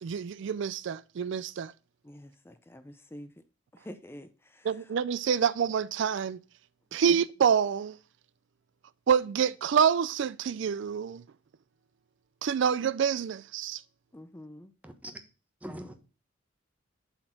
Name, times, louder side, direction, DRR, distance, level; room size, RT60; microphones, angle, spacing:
voice 1, 0.0-1.7 4.6-6.4 6.9-8.0 9.1-11.2 12.4-13.8, right 7 dB, 65° right, 0.4 m, -27 dB
voice 2, 2.0-3.3 3.7-4.9 7.1-7.2 14.1-14.7, equal, 10° left, 0.5 m, -47 dB
voice 3, 14.8-15.2 15.6-15.9, equal, 10° right, 1.1 m, -41 dB
7.8 x 4.4 x 5.7 m
head